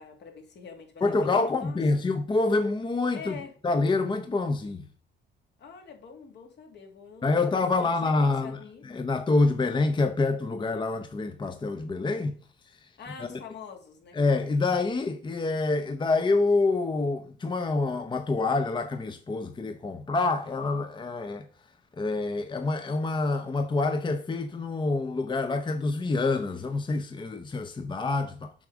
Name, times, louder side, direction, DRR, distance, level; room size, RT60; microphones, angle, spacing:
voice 1, 0.0-2.0 3.1-3.5 5.6-8.8 13.0-14.2, left 6 dB, 60° left, 2.0 m, -45 dB
voice 2, 1.0-4.9 7.2-12.3 12.7-12.9 14.1-21.5 21.9-28.5, left 3 dB, 25° left, 0.7 m, -27 dB
7.2 x 3.5 x 6.1 m
cardioid pair, 90°, 20 cm